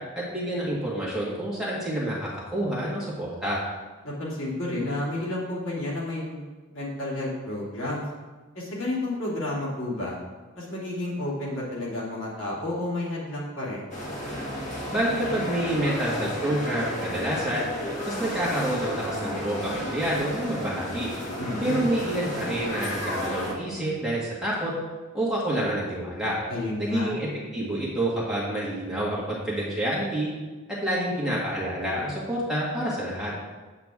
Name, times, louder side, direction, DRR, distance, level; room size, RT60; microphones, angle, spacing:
voice 1, 0.2-3.6 14.9-17.7 18.1-21.1 21.6-24.7 25.1-26.4 26.8-30.3 30.7-33.3, right 1 dB, 5° right, -7 dB, 1.9 m, -28 dB
voice 2, 4.0-8.0 8.5-10.2 10.5-13.9 21.4-21.9 26.5-27.1, left 1 dB, 70° left, -5 dB, 2.8 m, -31 dB
sound 1, 13.9-23.5, equal, 35° left, 1.4 m, -33 dB
8.5 x 8.1 x 3.7 m, 1.3 s
head